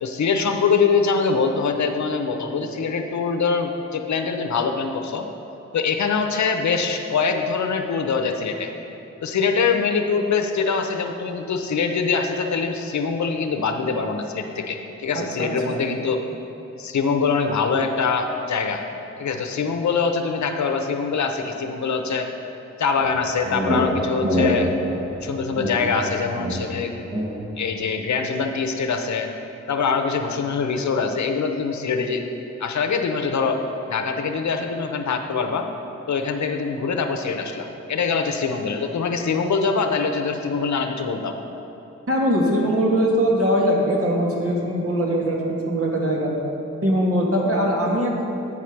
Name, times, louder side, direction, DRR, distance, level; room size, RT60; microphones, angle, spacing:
voice 1, 0.0-5.3 5.7-8.7 9.2-16.2 16.8-18.8 19.2-22.3 22.8-24.7 25.2-26.9 27.6-29.3 29.7-32.2 32.6-35.7 36.1-41.4, left 5 dB, 75° left, 5 dB, 0.8 m, -23 dB
voice 2, 15.2-15.8 24.2-24.3 42.1-46.3 46.8-48.2, equal, 50° right, -2 dB, 1.7 m, -21 dB
sound 1, 23.0-27.6, equal, 30° right, 1.4 m, -26 dB
8.9 x 4.9 x 5.9 m, 3.0 s
cardioid pair, 60°, 29 cm